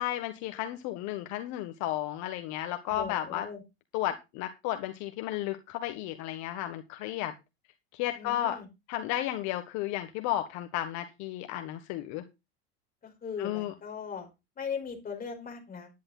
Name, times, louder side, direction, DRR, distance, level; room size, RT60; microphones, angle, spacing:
voice 1, 0.0-3.5 3.9-7.3 7.9-8.6 8.9-12.2 13.4-13.7, left 13 dB, 60° left, 8 dB, 1.6 m, -33 dB
voice 2, 2.9-3.6 8.1-8.7 13.0-14.3 14.6-15.9, left 6 dB, 25° left, 3 dB, 5.1 m, -39 dB
11.0 x 10.5 x 4.0 m, 0.25 s
supercardioid pair, 115°, 32 cm